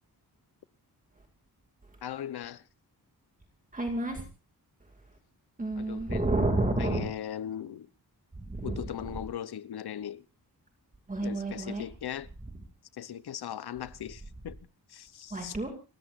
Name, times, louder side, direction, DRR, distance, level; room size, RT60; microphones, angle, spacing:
voice 1, 2.0-2.7 5.8-6.3 6.8-7.9 8.6-10.3 11.2-12.3 12.9-14.6 14.9-15.6, left 10 dB, 85° left, 0.9 m, -39 dB
voice 2, 3.7-4.3 4.8-5.2 5.6-7.1 8.3-9.2 11.1-11.8 15.3-15.7, right 2 dB, 20° right, 2.4 m, -31 dB
30.0 x 15.5 x 2.5 m
wide cardioid pair, 175°, 37 cm